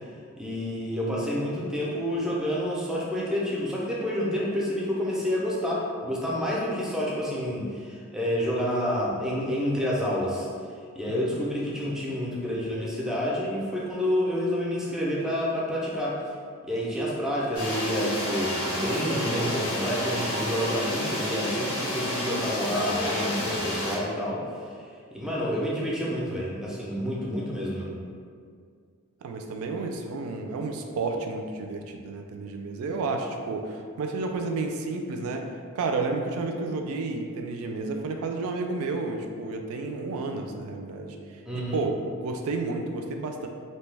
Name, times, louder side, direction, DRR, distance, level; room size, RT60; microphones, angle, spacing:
voice 1, 0.4-10.5 10.9-16.2 16.6-24.7 25.1-27.9 41.5-41.8, equal, 5° right, -5 dB, 0.4 m, -29 dB
sound 1, 17.5-24.0, equal, 70° left, 0.7 m, -30 dB
voice 2, 29.2-35.4 35.7-41.9 42.2-43.5, right 3 dB, 70° right, 3 dB, 0.3 m, -31 dB
2.7 x 2.2 x 3.2 m, 2.1 s
head